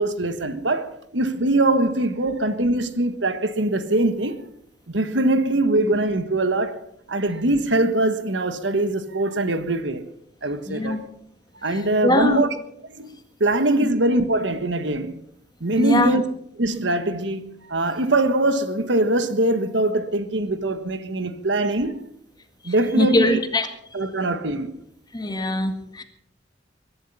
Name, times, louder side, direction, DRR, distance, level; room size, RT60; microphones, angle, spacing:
voice 1, 0.0-4.4 4.9-10.0 10.4-11.0 11.6-12.5 12.9-15.2 15.6-16.2 16.6-22.1 22.6-23.4 23.9-24.8, right 2 dB, 75° right, 1.4 m, -22 dB
voice 2, 10.7-11.0 11.7-12.4 13.8-13.9 15.8-16.2 22.6-24.0 25.1-26.0, left 1 dB, 25° left, 1.8 m, -23 dB
22.0 x 11.5 x 5.5 m
head